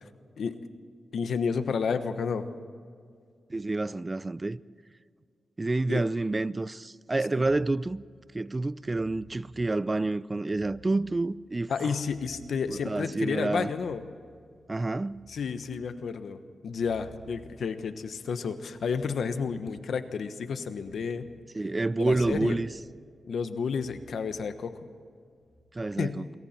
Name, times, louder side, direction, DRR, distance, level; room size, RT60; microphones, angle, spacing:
voice 1, 1.1-2.4 5.9-6.0 11.7-14.0 15.3-21.3 22.0-22.6 23.3-24.9 26.0-26.2, left 6 dB, 80° left, 1.2 m, -31 dB
voice 2, 3.5-4.6 5.6-8.0 8.3-11.9 12.7-13.7 14.7-15.3 21.5-22.7 25.7-26.2, right 2 dB, 25° right, 0.5 m, -28 dB
sound 1, 7.9-8.0 8.7-9.5 10.4-11.1 11.7-12.7 13.7-14.3 14.7-15.6 16.6-19.3 20.6-21.2 22.0-22.5 23.7-24.9 25.4-25.6, right 2 dB, 15° left, 4.4 m, -55 dB
28.5 x 22.5 x 4.5 m
cardioid pair, 80°, 0 cm